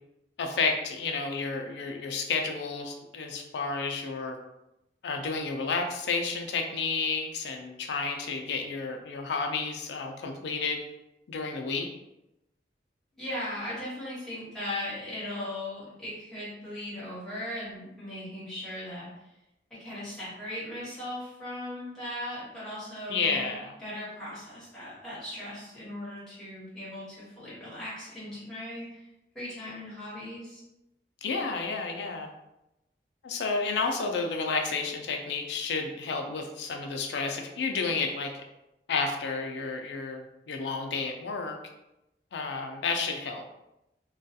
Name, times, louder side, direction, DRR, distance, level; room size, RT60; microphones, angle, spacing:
voice 1, 0.4-4.4 5.0-10.8 11.3-11.9 23.1-23.8 31.2-32.3 33.2-38.3 38.9-41.6 42.3-43.5, left 4 dB, 75° left, 3 dB, 0.4 m, -31 dB
voice 2, 13.2-19.1 19.8-23.5 23.8-29.0 29.3-30.6, left 1 dB, 5° left, -10 dB, 1.1 m, -38 dB
2.3 x 2.2 x 2.6 m, 0.91 s
head